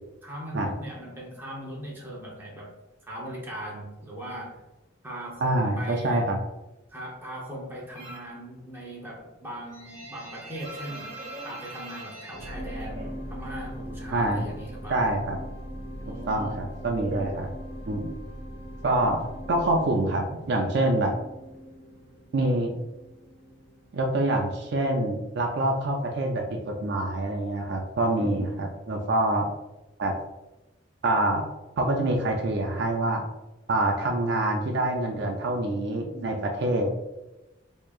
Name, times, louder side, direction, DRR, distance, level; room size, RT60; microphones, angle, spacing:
voice 1, 0.2-2.7 3.1-4.6 5.0-6.2 6.9-11.2 11.4-15.1 16.0-16.7 28.2-28.7 36.1-36.4, right 1 dB, 10° right, -4 dB, 0.8 m, -39 dB
voice 2, 5.4-6.4 14.1-14.4 14.9-15.4 16.3-17.5 17.9-18.1 18.8-19.2 19.5-21.1 22.3-22.7 23.9-28.5 28.9-29.5 30.0-30.1 31.0-31.4 31.8-33.2 33.7-36.3 36.6-36.9, right 1 dB, 60° right, 2 dB, 0.5 m, -25 dB
sound 1, 8.0-8.4 8.7-13.6 13.9-14.9 15.2-18.0, right 2 dB, 45° right, 1.3 m, -42 dB
sound 2, 12.3-24.7 25.3-25.4, equal, 55° left, 1.0 m, -40 dB
4.4 x 2.9 x 2.4 m, 1.0 s
head